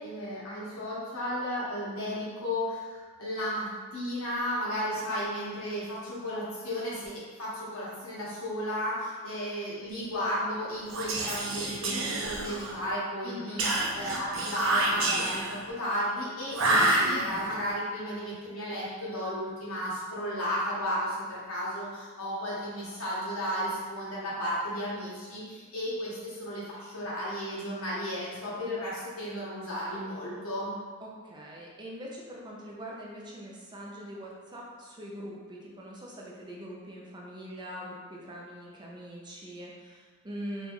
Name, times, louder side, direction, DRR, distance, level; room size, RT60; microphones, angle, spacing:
voice 1, 0.0-13.7 13.9-30.7, equal, 80° left, -8 dB, 1.2 m, -34 dB
Whispering, 10.9-12.8 13.6-15.6 16.5-17.6, right 2 dB, 65° right, 0.6 m, -28 dB
voice 2, 13.2-13.7 31.0-40.7, equal, 20° right, -4 dB, 0.6 m, -42 dB
3.0 x 2.5 x 3.6 m, 1.5 s
head